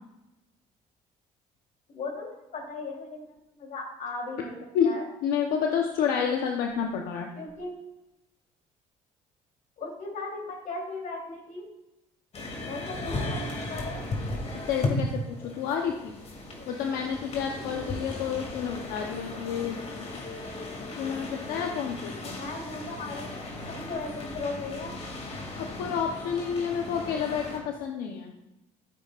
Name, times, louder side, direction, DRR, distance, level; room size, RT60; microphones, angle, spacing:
voice 1, 1.9-4.6 4.8-5.1 7.3-7.8 9.8-11.6 12.6-14.0 22.3-24.9, left 3 dB, 60° left, 0 dB, 3.6 m, -37 dB
voice 2, 5.2-7.3 14.7-16.1 16.7-20.1 21.0-22.4 25.8-28.3, left 7 dB, 85° left, 2 dB, 1.0 m, -29 dB
sound 1, 12.3-27.6, left 2 dB, 45° left, 2.6 m, -36 dB
14.0 x 8.4 x 2.5 m, 0.92 s
cardioid pair, 95°, 15 cm